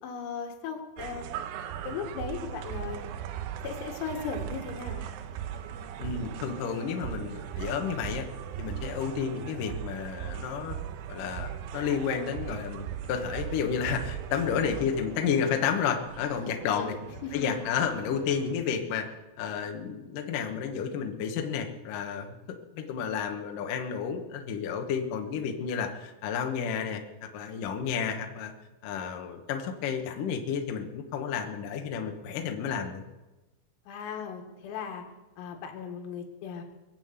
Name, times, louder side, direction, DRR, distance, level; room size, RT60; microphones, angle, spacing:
voice 1, 0.0-1.3 1.9-3.0 3.6-5.1 16.7-16.9 17.2-17.7 33.9-35.0 35.4-36.6, left 6 dB, 85° left, 3 dB, 4.5 m, -37 dB
sound 1, 1.0-18.5, right 9 dB, 80° right, 3.3 m, -39 dB
voice 2, 6.0-8.3 8.6-10.8 11.1-16.9 17.3-28.5 28.8-33.0, left 7 dB, 65° left, 3 dB, 2.1 m, -31 dB
22.5 x 7.7 x 8.1 m, 1.1 s
omnidirectional pair, 5.8 m